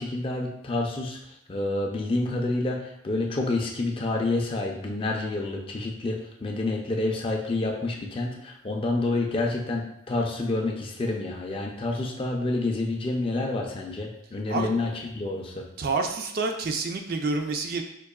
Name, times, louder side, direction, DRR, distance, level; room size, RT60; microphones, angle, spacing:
voice 1, 0.0-15.7, left 2 dB, 25° left, 1 dB, 0.4 m, -28 dB
voice 2, 15.8-17.8, right 3 dB, 45° right, 4 dB, 0.3 m, -28 dB
4.6 x 2.7 x 2.3 m, 0.77 s
head